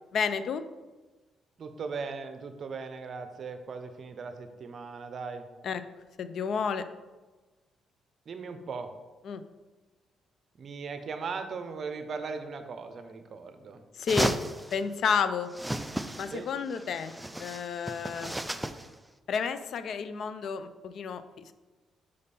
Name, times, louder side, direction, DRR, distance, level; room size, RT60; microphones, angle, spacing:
voice 1, 0.1-0.6 5.6-5.8 6.2-6.8 9.2-9.4 14.0-14.3 14.7-15.5 16.2-18.3 19.3-21.5, left 6 dB, 65° left, 11 dB, 0.4 m, -31 dB
voice 2, 1.6-5.4 8.3-8.9 10.6-13.8 16.3-16.5, right 5 dB, 50° right, 8 dB, 0.7 m, -38 dB
sound 1, 14.1-14.8 15.5-16.4 16.7-18.9, right 1 dB, 5° right, 0.4 m, -33 dB
5.3 x 5.2 x 4.2 m, 1.2 s
cardioid pair, 90°, 0 cm